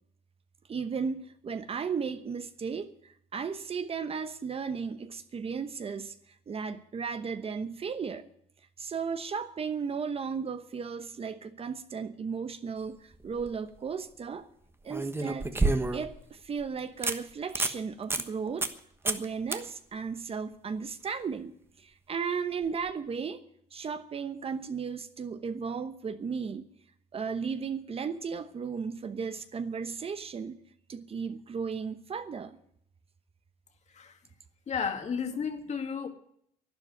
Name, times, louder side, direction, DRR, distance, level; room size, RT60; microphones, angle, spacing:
voice 1, 0.7-8.3 8.8-14.5 14.8-15.5 15.9-18.7 19.0-23.4 23.7-26.7 27.1-30.6 30.9-32.6, right 6 dB, 35° right, 1.0 m, -35 dB
sound 1, 13.1-13.5 14.9-16.2 16.6-16.7 17.0-17.2 17.5-17.8 18.1-18.2 18.6-18.8 19.1-19.3 19.5-19.6 22.7-22.8, right 2 dB, 15° right, 1.2 m, -29 dB
voice 2, 34.7-36.1, left 6 dB, 45° left, 2.3 m, -32 dB
12.0 x 10.5 x 9.3 m
cardioid pair, 110°, 17 cm